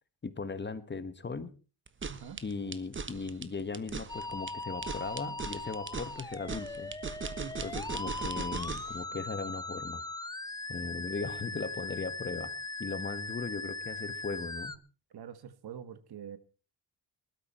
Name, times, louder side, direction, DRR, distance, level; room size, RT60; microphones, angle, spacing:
voice 1, 0.2-1.5 2.4-6.9 7.6-10.0 10.7-12.5 12.8-14.8, left 4 dB, 25° left, 13 dB, 1.4 m, -38 dB
sound 1, 1.9-9.0, right 5 dB, 30° right, 1.3 m, -39 dB
voice 2, 2.1-2.4 7.4-7.6 15.1-16.4, right 8 dB, 65° right, 13 dB, 1.6 m, -45 dB
Musical instrument, 4.1-14.8, left 2 dB, 10° left, 0.7 m, -40 dB
19.5 x 13.0 x 4.4 m, 0.36 s
cardioid pair, 100°, 42 cm